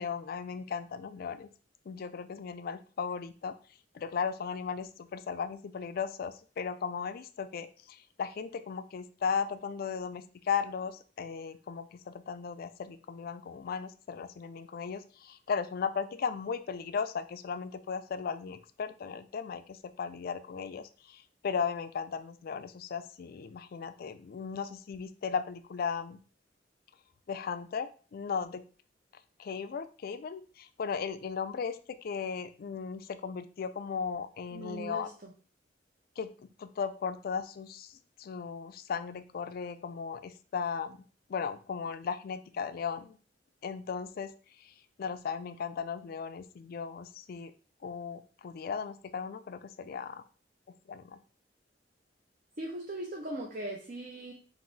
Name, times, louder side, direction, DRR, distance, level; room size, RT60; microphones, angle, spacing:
voice 1, 0.0-1.5 1.9-3.5 3.9-26.2 27.3-28.6 29.4-35.1 36.2-37.9 38.2-41.0 41.3-43.2 43.6-44.3 45.0-47.5 47.8-50.2 50.9-51.2, left 6 dB, 55° left, 11 dB, 0.3 m, -36 dB
voice 2, 34.5-35.3 52.6-54.3, right 1 dB, 50° right, -1 dB, 0.7 m, -39 dB
3.8 x 2.6 x 3.9 m, 0.39 s
head